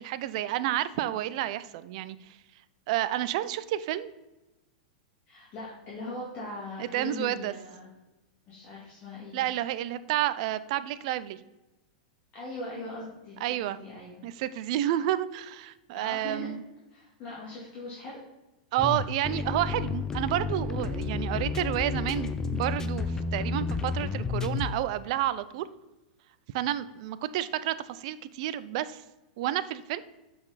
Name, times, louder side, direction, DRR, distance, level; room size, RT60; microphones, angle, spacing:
voice 1, 0.0-2.2 2.9-4.1 6.8-7.5 9.3-11.4 13.4-13.8 14.2-16.6 18.7-25.7 26.5-29.0 29.4-30.0, right 13 dB, 55° right, 15 dB, 0.4 m, -30 dB
voice 2, 5.3-7.9 8.5-9.5 12.3-13.4 13.7-14.2 15.9-16.5 16.9-18.2, left 2 dB, 35° left, -7 dB, 2.2 m, -40 dB
sound 1, 18.8-24.8, left 4 dB, 15° left, 0.5 m, -31 dB
7.7 x 4.2 x 4.0 m, 1.0 s
hypercardioid pair, 130°, 4 cm